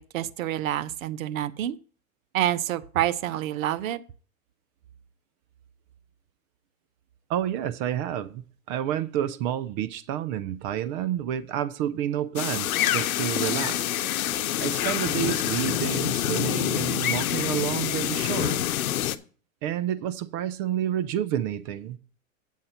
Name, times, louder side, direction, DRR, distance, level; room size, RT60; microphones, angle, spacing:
voice 1, 0.0-1.8 2.3-4.0, right 12 dB, 70° right, 0.8 m, -28 dB
voice 2, 7.3-14.0 14.6-18.6 19.6-22.0, right 11 dB, 40° right, 0.7 m, -29 dB
sound 1, 12.4-19.2, left 12 dB, 85° left, 0.8 m, -26 dB
9.1 x 7.4 x 4.3 m
hypercardioid pair, 130°, 42 cm